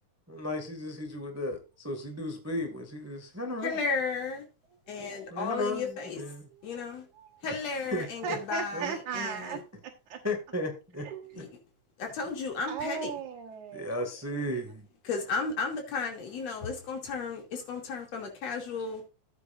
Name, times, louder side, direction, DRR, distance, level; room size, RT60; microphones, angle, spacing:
voice 1, 0.3-3.8 5.3-6.5 7.4-7.6 7.9-8.4 8.7-9.3 10.2-11.1 11.3-11.4 13.7-14.8, left 1 dB, 5° right, 1.5 m, -35 dB
voice 2, 3.6-4.4 4.9-6.2 6.6-7.1 7.4-8.9 9.1-9.6 11.4-11.5 12.0-13.1 15.1-19.0, left 4 dB, 60° left, 3.7 m, -34 dB
voice 3, 4.9-5.5 6.4-7.4 8.2-10.2 11.0-11.4 12.6-14.0 16.5-16.6 18.8-18.9, right 6 dB, 85° right, 2.6 m, -38 dB
14.5 x 8.1 x 2.6 m
omnidirectional pair, 3.3 m